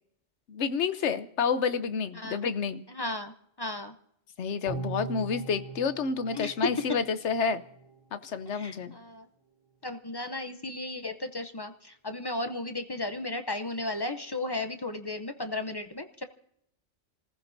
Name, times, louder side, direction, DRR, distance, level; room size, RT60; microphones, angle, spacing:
voice 1, 0.5-2.8 4.4-7.6 8.1-8.9, left 5 dB, 65° left, 12 dB, 1.1 m, -29 dB
voice 2, 2.1-2.5 2.9-4.0 6.3-6.7 8.5-9.3 9.8-16.2, left 2 dB, 30° left, 8 dB, 0.5 m, -35 dB
sound 1, 4.7-8.0 8.4-8.5, right 4 dB, 50° right, 1.8 m, -41 dB
29.0 x 15.0 x 2.6 m, 0.74 s
omnidirectional pair, 1.3 m